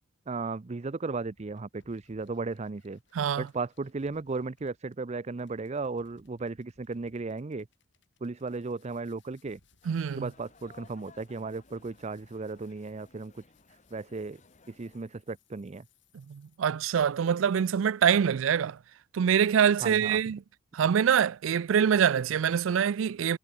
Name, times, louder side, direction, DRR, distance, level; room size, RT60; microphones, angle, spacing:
voice 1, 0.3-3.0 3.4-7.7 8.2-9.6 10.2-13.4 13.9-14.4 14.7-15.9 19.8-20.2, right 3 dB, 35° right, 0.5 m, -35 dB
sound 1, 1.1-17.6, left 4 dB, 65° left, 5.1 m, -68 dB
voice 2, 3.1-3.5 9.9-10.3 16.1-18.8 19.1-20.4 20.7-23.4, right 8 dB, 85° right, 0.4 m, -25 dB
sound 2, 9.8-15.1, left 3 dB, 40° left, 1.8 m, -59 dB
head